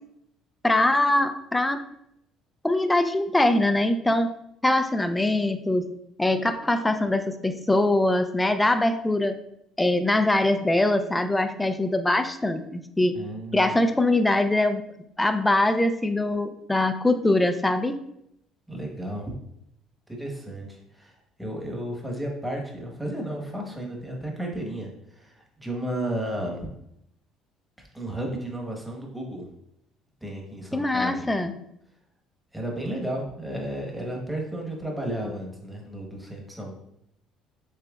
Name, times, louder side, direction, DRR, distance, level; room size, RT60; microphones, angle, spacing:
voice 1, 0.6-1.8 2.6-4.3 4.6-5.8 6.2-9.4 9.8-13.2 13.5-14.8 15.2-18.0 30.7-31.5, left 1 dB, 10° left, 9 dB, 0.5 m, -22 dB
voice 2, 13.1-13.7 18.7-19.3 20.1-21.1 21.4-26.7 27.8-29.5 30.2-31.3 32.5-36.8, right 1 dB, 5° right, 0 dB, 1.3 m, -33 dB
6.7 x 3.2 x 2.4 m, 0.78 s
supercardioid pair, 90°, 0 cm